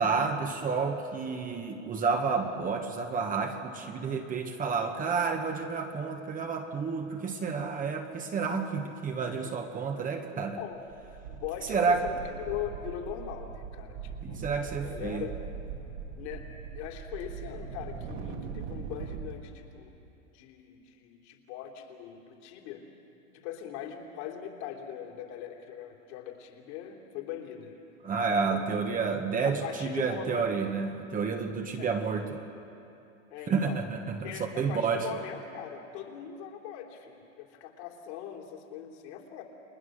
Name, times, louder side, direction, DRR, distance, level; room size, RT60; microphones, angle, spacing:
voice 1, 0.0-10.6 11.7-12.0 14.2-15.3 28.0-32.4 33.5-35.1, right 5 dB, 20° right, 4 dB, 1.3 m, -30 dB
voice 2, 10.2-10.8 11.1-15.4 16.1-16.5 16.7-20.0 20.3-22.9 23.3-27.8 28.5-28.9 29.4-30.5 31.8-31.9 33.3-33.8 34.2-39.4, left 9 dB, 60° left, 1 dB, 3.4 m, -41 dB
sound 1, 10.6-10.7 10.9-19.4, right 6 dB, 55° right, 2.2 m, -41 dB
30.0 x 20.5 x 6.5 m, 2.8 s
supercardioid pair, 140°, 39 cm